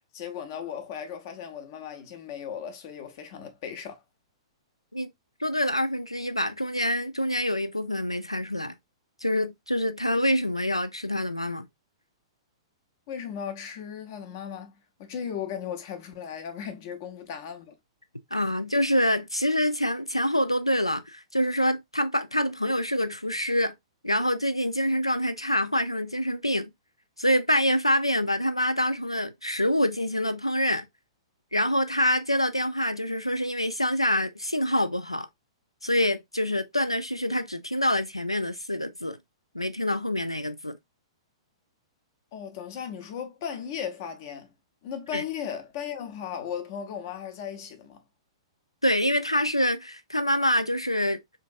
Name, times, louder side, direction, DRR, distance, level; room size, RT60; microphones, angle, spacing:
voice 1, 0.1-4.0 13.1-17.7 42.3-44.5 44.8-48.0, left 8 dB, 40° left, 0.8 m, -36 dB
voice 2, 5.4-8.7 9.2-11.6 18.3-23.7 24.0-26.7 27.2-30.9 31.5-35.3 35.8-39.2 39.5-40.8 45.1-45.2 48.8-51.2, equal, 90° left, 0.4 m, -26 dB
3.7 x 2.6 x 2.5 m
figure-of-eight pair, 110°, 3 cm